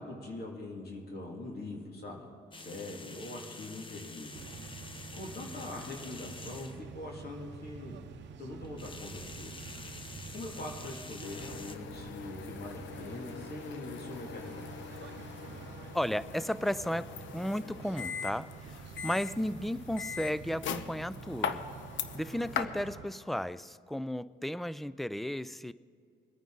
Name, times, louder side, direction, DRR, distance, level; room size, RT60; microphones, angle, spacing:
voice 1, 0.0-4.4 5.1-7.9 8.4-9.6 10.3-14.7 22.6-22.7, left 2 dB, 50° left, 0 dB, 2.2 m, -43 dB
sound 1, 2.5-6.8 8.6-11.7, left 3 dB, 25° left, 0.9 m, -47 dB
sound 2, 4.3-23.1, right 6 dB, 65° right, 0.7 m, -48 dB
sound 3, 11.2-22.7, left 8 dB, 75° left, 0.7 m, -41 dB
voice 2, 15.9-17.1 17.3-21.6 22.1-25.7, equal, ahead, 17 dB, 0.3 m, -34 dB
22.5 x 9.1 x 3.8 m, 2.3 s
cardioid pair, 90°, 20 cm